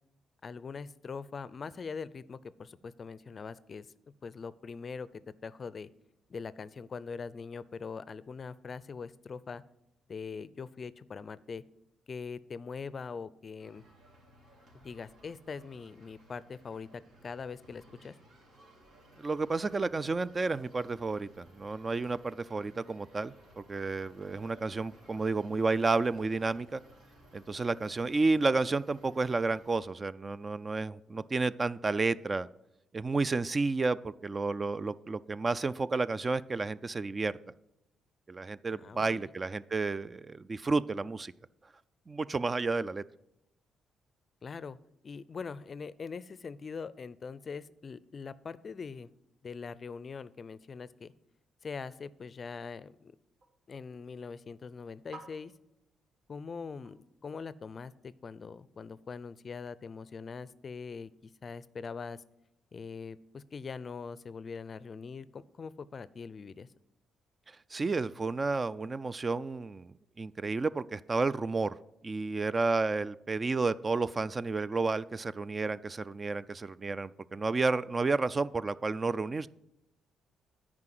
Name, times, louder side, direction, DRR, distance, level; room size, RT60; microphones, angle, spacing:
voice 1, 0.4-3.9 4.2-5.1 5.4-5.9 6.3-9.6 10.1-11.6 12.1-13.8 14.7-18.1 38.8-39.2 44.4-44.8 45.0-49.1 49.4-51.1 51.6-53.1 53.7-55.5 56.3-62.2 62.7-66.7, left 5 dB, 40° left, 18 dB, 0.4 m, -42 dB
sound 1, 13.6-29.8, right 1 dB, 80° right, 3.6 m, -59 dB
voice 2, 19.2-26.8 27.3-32.5 32.9-37.3 38.3-41.3 42.1-43.0 67.7-71.8 72.0-79.5, right 3 dB, 30° right, 17 dB, 0.3 m, -31 dB
sound 2, 53.0-57.9, right 3 dB, 50° right, 3.8 m, -58 dB
9.7 x 4.8 x 7.6 m, 0.84 s
cardioid pair, 90°, 0 cm